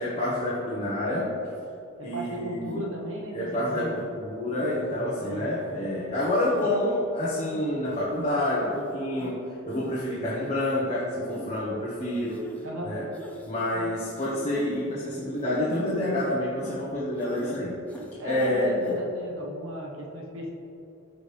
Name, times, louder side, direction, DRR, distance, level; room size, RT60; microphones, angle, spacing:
voice 1, 0.0-1.3 2.0-2.7 3.3-9.4 9.7-12.4 12.8-13.1 13.4-17.8 18.2-19.0, left 1 dB, 30° left, -8 dB, 1.4 m, -28 dB
voice 2, 1.9-4.1 5.2-5.5 12.6-12.9 13.7-13.9 18.2-20.5, right 1 dB, 65° right, -2 dB, 1.4 m, -36 dB
sound 1, 2.7-2.9 3.5-4.1 4.6-5.1 5.6-5.9 6.4-6.7 7.2-7.6 8.2-8.3 8.6-8.8 9.2-9.3 9.7-10.1 10.4-10.6 11.3-11.5 12.1-12.6 13.1-13.5 14.2-14.9 15.4-16.9 17.2-17.6 17.9-18.5 18.8-19.0, right 1 dB, 5° left, 0.9 m, -41 dB
14.5 x 4.9 x 3.5 m, 2.8 s
head